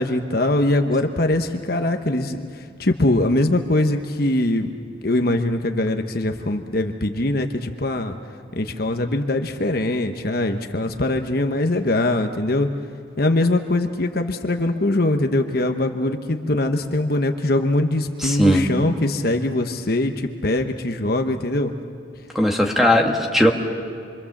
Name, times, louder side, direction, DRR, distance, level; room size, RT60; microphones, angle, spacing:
voice 1, 0.0-4.7 5.0-8.2 8.5-12.7 13.2-21.7, left 1 dB, 50° left, 5 dB, 1.1 m, -22 dB
voice 2, 18.2-18.6 22.4-23.5, equal, ahead, 2 dB, 1.9 m, -17 dB
27.0 x 24.5 x 7.3 m, 2.4 s
head